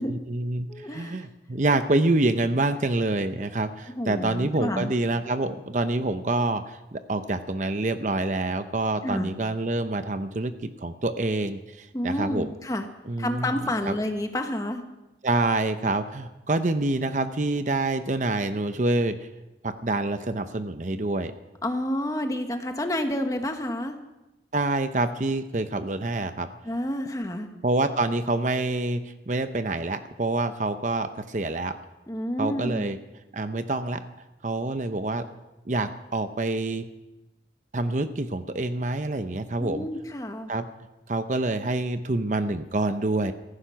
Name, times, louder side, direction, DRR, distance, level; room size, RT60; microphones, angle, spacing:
voice 1, 0.1-12.5 13.1-13.5 13.9-14.0 15.2-19.3 19.6-21.3 24.5-26.5 27.6-31.8 32.4-33.0 33.3-34.0 34.4-35.3 35.7-36.8 37.7-39.9 40.5-40.7 41.1-43.3, right 2 dB, 45° right, 10 dB, 0.7 m, -27 dB
voice 2, 0.7-1.2 3.9-4.9 9.0-9.3 11.9-12.9 13.2-14.8 21.6-24.0 26.6-27.5 32.1-32.9 39.6-40.5, left 1 dB, 20° left, 5 dB, 1.3 m, -29 dB
16.5 x 15.0 x 5.8 m, 1.0 s
head